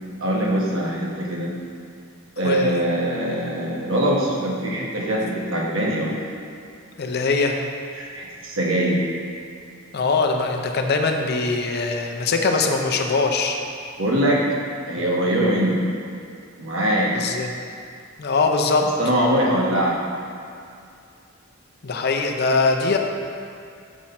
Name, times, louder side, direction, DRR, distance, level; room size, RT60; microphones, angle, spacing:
voice 1, 0.2-1.5 2.4-6.2 8.0-9.0 14.0-14.4 14.9-15.8 16.6-17.2 19.0-20.0, right 1 dB, 75° right, -3 dB, 1.2 m, -22 dB
voice 2, 2.4-2.8 7.0-7.6 9.9-13.6 17.1-17.5 18.2-18.9 21.8-23.0, left 4 dB, 50° left, 3 dB, 0.6 m, -22 dB
6.1 x 5.6 x 4.3 m, 2.4 s
head